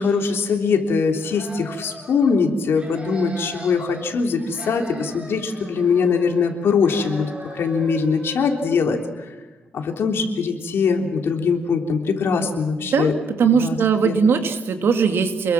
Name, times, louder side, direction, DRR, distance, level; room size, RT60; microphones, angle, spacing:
voice 1, 0.0-9.3 9.7-13.2 13.5-13.8 14.0-14.1, left 5 dB, 85° left, 3 dB, 3.5 m, -22 dB
sound 1, 1.2-2.4 2.7-4.1 4.4-6.5 6.8-8.8, right 1 dB, 25° right, 7.1 m, -39 dB
voice 2, 13.4-15.5, right 6 dB, 75° right, 6 dB, 2.7 m, -19 dB
29.0 x 22.0 x 6.1 m, 1.2 s
wide cardioid pair, 125°, 4 cm